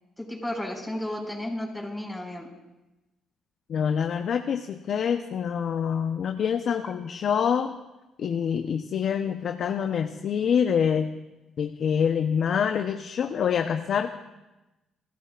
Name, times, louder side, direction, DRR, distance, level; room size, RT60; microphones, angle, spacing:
voice 1, 0.2-2.5, left 1 dB, 5° left, -1 dB, 5.6 m, -33 dB
voice 2, 3.7-7.7 8.2-11.2 11.6-14.2, left 7 dB, 60° left, 6 dB, 0.8 m, -26 dB
29.5 x 15.0 x 2.5 m, 1.0 s
cardioid pair, 75°, 0 cm